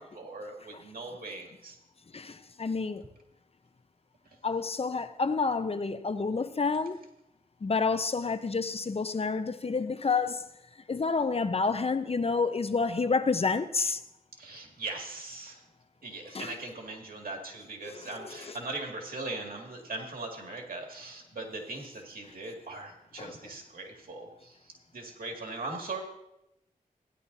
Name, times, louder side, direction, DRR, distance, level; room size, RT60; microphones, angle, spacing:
voice 1, 0.0-1.8 14.4-15.6 16.0-24.6 24.9-26.0, right 2 dB, 85° right, 2.2 m, -40 dB
voice 2, 2.1-3.0 4.4-7.0 7.6-10.5 10.9-14.0 16.3-16.5 17.8-18.6 23.2-23.3, left 4 dB, 40° left, 0.6 m, -29 dB
16.0 x 10.5 x 2.7 m
wide cardioid pair, 75°, 15 cm